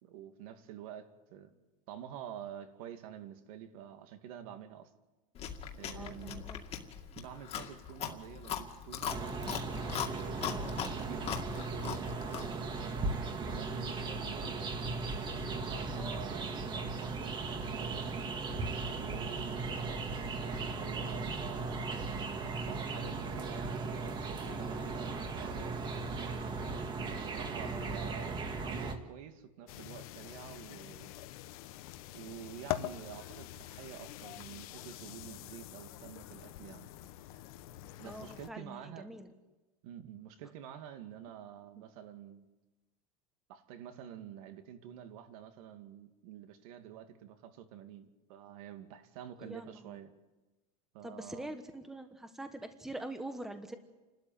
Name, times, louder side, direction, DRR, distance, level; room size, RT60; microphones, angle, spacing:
voice 1, 0.0-1.5 1.9-4.9 5.8-6.4 7.2-9.2 9.8-10.6 11.0-14.6 15.4-18.2 19.0-22.0 22.6-26.4 26.9-31.2 32.1-36.9 38.0-39.1 39.8-42.5 43.5-50.1 50.9-51.5, right 9 dB, 65° right, 7 dB, 2.4 m, -48 dB
Chewing mastication, 5.4-12.6, left 9 dB, 30° left, 2.2 m, -40 dB
voice 2, 5.9-6.6 10.4-10.7 15.9-16.2 27.6-28.0 38.0-39.3 49.4-50.0 51.0-53.8, right 1 dB, ahead, 7 dB, 1.3 m, -45 dB
sound 1, 9.0-28.9, right 3 dB, 25° right, 1.9 m, -37 dB
sound 2, 29.7-38.5, left 15 dB, 65° left, 1.2 m, -44 dB
29.5 x 13.0 x 9.3 m, 1.1 s
supercardioid pair, 155°, 20 cm